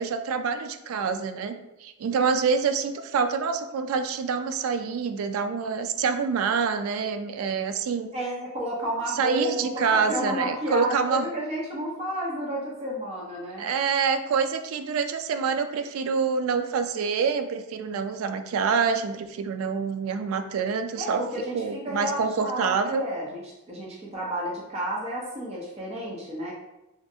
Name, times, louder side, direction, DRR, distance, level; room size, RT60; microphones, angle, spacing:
voice 1, 0.0-8.1 9.2-11.3 13.6-21.2 21.5-23.1, right 5 dB, 80° right, 9 dB, 0.3 m, -26 dB
voice 2, 8.1-13.7 21.0-26.5, right 1 dB, 30° right, -4 dB, 0.6 m, -31 dB
3.0 x 2.5 x 2.7 m, 0.93 s
head